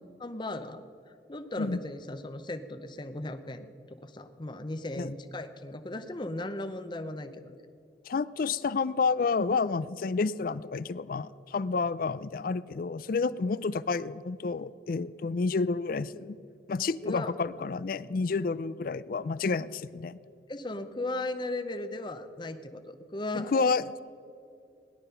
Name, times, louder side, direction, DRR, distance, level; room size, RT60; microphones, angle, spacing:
voice 1, 0.2-0.8 1.3-7.6 17.0-17.3 20.5-23.5, left 2 dB, 25° left, 10 dB, 0.7 m, -37 dB
voice 2, 8.1-16.4 16.7-20.2 23.3-24.0, left 4 dB, 55° left, 18 dB, 0.4 m, -30 dB
17.5 x 11.0 x 5.7 m, 2.5 s
head